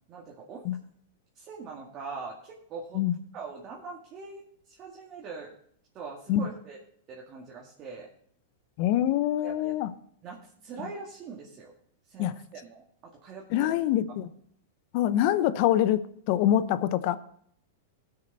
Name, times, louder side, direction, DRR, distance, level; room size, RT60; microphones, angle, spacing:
voice 1, 0.1-0.6 1.4-3.0 3.3-5.5 5.9-6.8 7.1-8.1 9.4-9.7 10.2-11.7 12.1-13.7, right 4 dB, 35° right, -3 dB, 2.0 m, -42 dB
voice 2, 8.8-9.9 10.8-10.9 12.2-12.4 13.5-14.3 14.9-17.2, left 12 dB, 55° left, 15 dB, 0.7 m, -25 dB
17.5 x 6.7 x 4.0 m, 0.66 s
hypercardioid pair, 110°, 0 cm